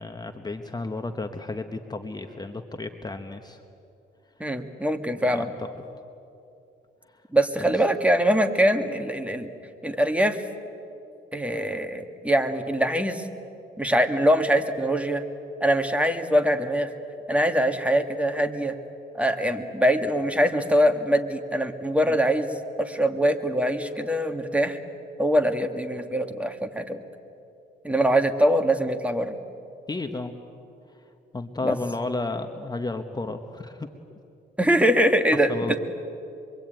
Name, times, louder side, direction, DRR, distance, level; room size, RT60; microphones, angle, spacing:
voice 1, 0.0-3.6 5.2-5.7 7.6-7.8 22.1-22.2 29.9-30.3 31.3-33.9 35.5-35.7, left 2 dB, 20° left, 6 dB, 1.3 m, -32 dB
voice 2, 4.4-5.5 7.3-9.5 9.8-10.4 11.3-13.2 13.8-15.2 15.6-16.9 17.3-18.7 19.1-22.5 22.8-24.8 25.2-27.0 27.8-29.4 31.6-31.8 34.6-35.8, equal, 5° right, 6 dB, 1.9 m, -23 dB
25.5 x 23.0 x 9.1 m, 2.7 s
cardioid pair, 90°, 20 cm